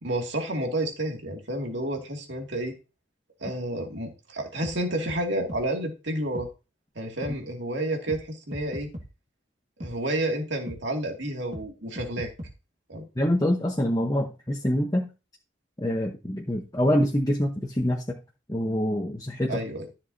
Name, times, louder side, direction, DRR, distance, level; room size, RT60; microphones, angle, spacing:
voice 1, 0.0-2.8 3.4-6.5 7.0-8.9 9.8-12.3 12.9-13.1 19.5-19.9, right 1 dB, 65° right, 2 dB, 2.3 m, -30 dB
sound 1, 4.6-4.8 5.1-5.2 5.5-5.6 6.3-6.5 7.2-7.3 8.1-8.2 8.5-9.1 9.8-9.9 10.7-10.8 11.5-11.7 12.0-12.5, equal, 35° right, 1.8 m, -38 dB
voice 2, 13.2-15.1 15.8-18.0 18.5-19.6, equal, 20° left, 1 dB, 1.0 m, -25 dB
13.5 x 7.2 x 2.7 m, 0.30 s
head